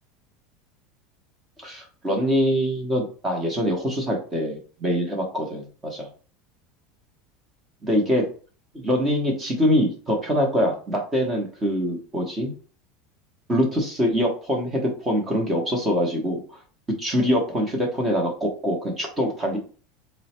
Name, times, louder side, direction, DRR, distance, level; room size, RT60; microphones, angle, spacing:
voice 1, 1.6-6.1 7.8-8.2 8.7-12.5 13.5-16.6 17.0-19.6, equal, 15° right, 0 dB, 1.0 m, -24 dB
3.8 x 2.2 x 4.3 m, 0.39 s
supercardioid pair, 160°, 0 cm